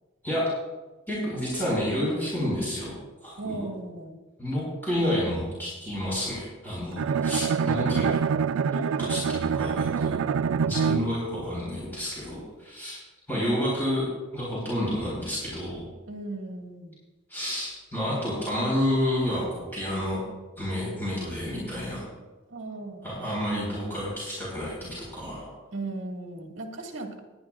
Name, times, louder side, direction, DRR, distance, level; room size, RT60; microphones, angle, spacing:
voice 1, 1.1-2.9 3.2-3.7 4.4-8.2 8.7-10.2 10.6-13.0 13.3-14.1 14.3-15.9 17.3-20.2 20.6-22.1 23.0-25.5, left 1 dB, 10° left, -7 dB, 4.6 m, -30 dB
voice 2, 3.4-4.2 16.1-17.0 22.5-23.3 25.7-27.2, right 2 dB, 65° right, 1 dB, 1.9 m, -37 dB
Bowed string instrument, 7.0-11.3, right 6 dB, 85° right, 0.4 m, -26 dB
19.5 x 11.0 x 2.5 m, 1.2 s
head